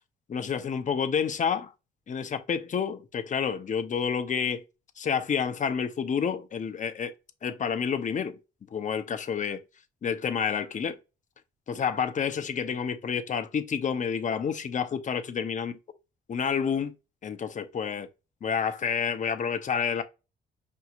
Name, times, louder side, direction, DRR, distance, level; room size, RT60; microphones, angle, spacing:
voice 1, 0.3-1.7 2.1-4.6 5.0-7.1 7.4-8.4 8.7-9.6 10.0-11.0 11.7-15.8 16.3-16.9 17.2-18.1 18.4-20.0, left 7 dB, 40° left, 0.7 m, -29 dB
5.4 x 2.8 x 2.4 m
cardioid pair, 90°, 20 cm